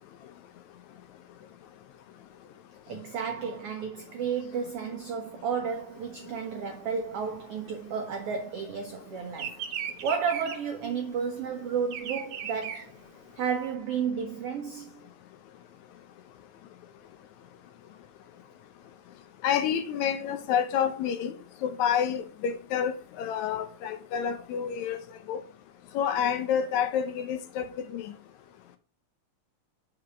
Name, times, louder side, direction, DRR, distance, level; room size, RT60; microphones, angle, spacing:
voice 1, 2.9-9.6 10.0-12.9 13.4-15.0, right 6 dB, 85° right, 1.3 m, -32 dB
Bird vocalization bird call bird song, 5.7-8.6 8.9-13.6, right 8 dB, 60° right, 1.6 m, -38 dB
voice 2, 19.4-21.3 21.6-25.0 25.3-25.4 26.0-28.1, left 8 dB, 75° left, 1.8 m, -28 dB
5.2 x 4.8 x 5.6 m
omnidirectional pair, 3.7 m